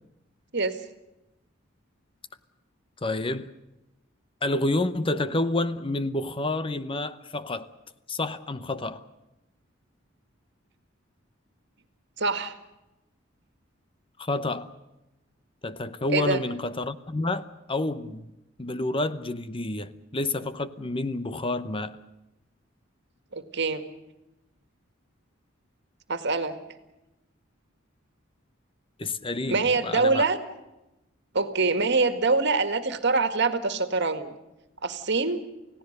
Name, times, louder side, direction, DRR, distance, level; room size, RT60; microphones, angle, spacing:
voice 1, 3.0-3.5 4.4-7.7 8.1-9.0 14.2-14.7 15.6-18.3 18.6-22.0 29.0-30.2, left 2 dB, 25° left, 0.8 m, -29 dB
voice 2, 12.2-12.6 16.1-16.4 23.3-23.8 26.1-26.6 29.5-30.4 31.3-34.4 34.8-35.4, right 3 dB, 60° right, 1.9 m, -24 dB
29.5 x 17.0 x 6.7 m
head